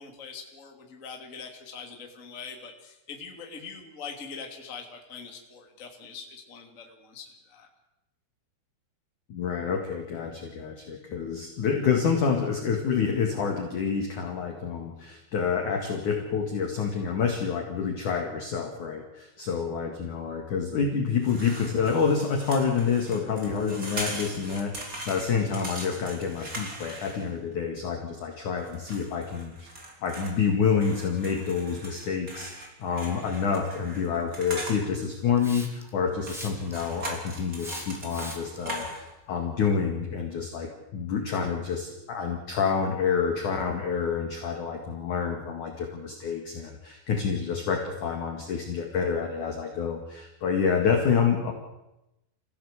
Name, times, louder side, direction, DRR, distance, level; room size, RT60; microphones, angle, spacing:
voice 1, 0.0-7.7, left 5 dB, 25° left, 2 dB, 2.1 m, -43 dB
voice 2, 9.3-29.7 30.0-51.5, left 6 dB, 50° left, 3 dB, 2.7 m, -28 dB
sound 1, 21.2-27.5 28.7-30.3 30.8-34.8 36.2-39.1, right 1 dB, 20° right, 3.6 m, -40 dB
Hiss, 35.4-35.9 36.2-36.9 37.6-38.6, equal, ahead, 0.9 m, -41 dB
26.0 x 16.0 x 8.1 m, 0.92 s
omnidirectional pair, 5.7 m